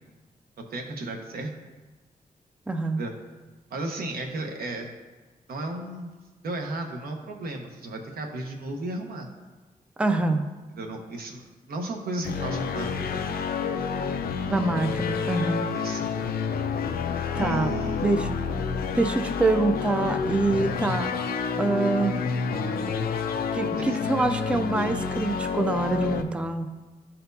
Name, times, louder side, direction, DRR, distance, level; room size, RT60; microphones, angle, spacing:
voice 1, 0.6-1.5 2.9-3.1 3.7-4.9 5.5-6.1 6.4-9.3 10.8-13.7 15.7-16.1 17.3-18.2 23.8-24.0, right 2 dB, 90° right, 2 dB, 1.0 m, -34 dB
voice 2, 2.7-3.0 10.0-10.5 14.5-15.7 17.4-17.7 18.0-18.3 18.9-21.1 21.6-22.2 23.5-26.7, right 2 dB, 5° right, 8 dB, 0.3 m, -25 dB
sound 1, 12.2-26.2, left 5 dB, 90° left, 0.5 m, -29 dB
12.5 x 4.3 x 2.7 m, 1.2 s
wide cardioid pair, 170°, 15 cm